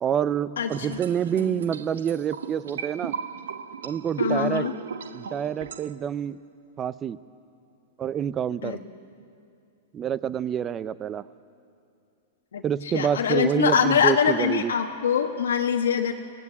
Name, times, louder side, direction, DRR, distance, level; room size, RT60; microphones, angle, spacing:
voice 1, 0.0-3.2 3.8-4.7 5.1-6.4 6.8-7.2 8.0-8.8 9.9-11.2 12.6-14.7, right 9 dB, 25° right, 17 dB, 0.5 m, -27 dB
voice 2, 0.6-1.0 1.4-1.6 4.2-4.7 8.6-8.8 12.5-12.6 12.9-16.1, left 7 dB, 90° left, 4 dB, 1.3 m, -24 dB
sound 1, 0.7-5.9, right 6 dB, 85° right, 0.9 m, -36 dB
24.0 x 18.0 x 8.5 m, 2.5 s
hypercardioid pair, 140°, 0 cm